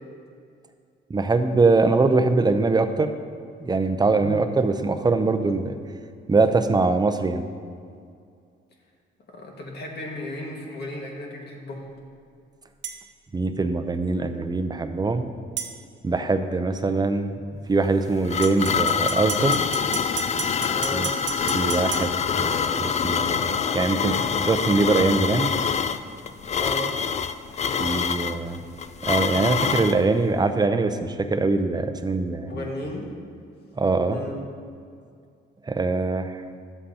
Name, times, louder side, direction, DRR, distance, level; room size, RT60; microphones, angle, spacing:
voice 1, 1.1-3.1 3.6-5.7 6.3-7.4 13.3-15.3 16.0-17.4 17.7-19.6 20.9-21.1 21.5-25.5 27.8-28.6 29.0-32.6 33.8-34.2 35.7-36.3, right 3 dB, 20° right, 8 dB, 0.6 m, -22 dB
voice 2, 4.1-4.4 9.3-11.8 20.7-21.1 26.5-26.9 32.5-33.1 34.0-34.4, left 1 dB, 55° left, -1 dB, 1.7 m, -34 dB
sound 1, 12.8-13.0 15.6-15.7 18.4-22.1, right 8 dB, 65° right, 0.9 m, -32 dB
sound 2, 17.8-30.0, left 6 dB, 35° left, 0.4 m, -25 dB
12.5 x 7.6 x 2.9 m, 2.3 s
cardioid pair, 90°, 20 cm